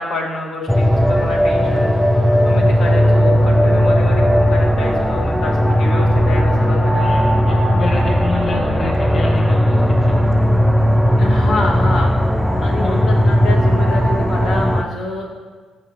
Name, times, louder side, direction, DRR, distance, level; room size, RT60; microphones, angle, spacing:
voice 1, 0.0-1.9 2.4-7.0 11.2-12.1 12.6-15.3, left 2 dB, 75° left, -1 dB, 1.1 m, -27 dB
sound 1, 0.7-14.8, equal, ahead, 0.4 m, -15 dB
voice 2, 6.9-10.3 12.8-13.0, left 3 dB, 45° left, -1 dB, 0.8 m, -27 dB
5.4 x 4.1 x 5.3 m, 1.4 s
cardioid pair, 90°, 0 cm